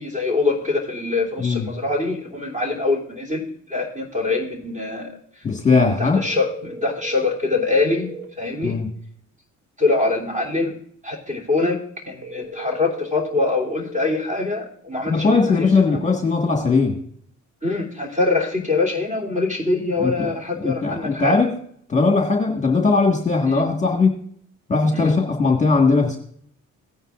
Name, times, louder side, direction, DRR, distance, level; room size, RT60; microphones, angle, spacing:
voice 1, 0.0-5.2 5.7-8.1 8.4-8.8 9.8-10.7 11.0-16.0 17.6-21.4 23.5-23.6 24.9-25.1, left 3 dB, 25° right, -1 dB, 3.1 m, -24 dB
voice 2, 5.4-6.2 8.6-8.9 15.1-17.0 20.0-21.5 21.9-24.2 24.7-26.2, left 4 dB, 25° left, 1 dB, 1.7 m, -19 dB
sound 1, 6.2-8.2 12.2-14.2, right 4 dB, 45° right, 2.9 m, -36 dB
16.5 x 9.5 x 2.5 m, 0.62 s
cardioid pair, 90°, 30 cm